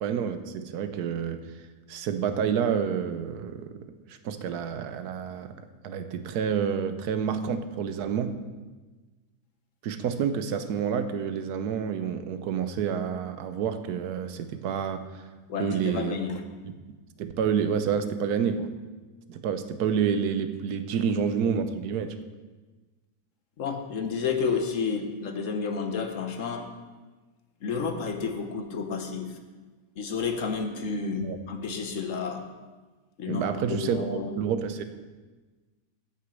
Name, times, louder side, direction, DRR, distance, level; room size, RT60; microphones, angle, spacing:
voice 1, 0.0-1.4 1.9-5.5 5.8-8.4 9.8-15.2 15.6-16.1 16.6-16.7 17.2-18.7 19.3-22.2 31.2-31.4 33.3-34.8, right 7 dB, 85° right, 10 dB, 1.2 m, -29 dB
voice 2, 15.5-16.4 23.6-26.7 27.6-29.4 30.0-32.5 33.2-34.3, left 5 dB, 60° left, 6 dB, 1.2 m, -31 dB
8.9 x 6.2 x 7.6 m, 1.3 s
omnidirectional pair, 1.6 m